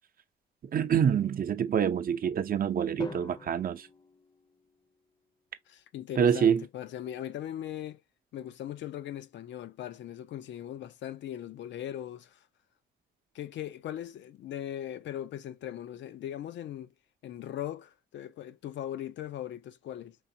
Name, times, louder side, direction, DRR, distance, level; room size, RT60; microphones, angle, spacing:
voice 1, 0.6-3.9 6.2-6.6, right 8 dB, 45° right, 0.7 m, -26 dB
Drum, 3.0-5.1, left 3 dB, 20° left, 0.6 m, -45 dB
voice 2, 5.7-8.0 8.3-12.4 13.3-16.9 17.2-20.2, left 11 dB, 65° left, 0.5 m, -39 dB
4.8 x 3.4 x 2.7 m
cardioid pair, 90°, 20 cm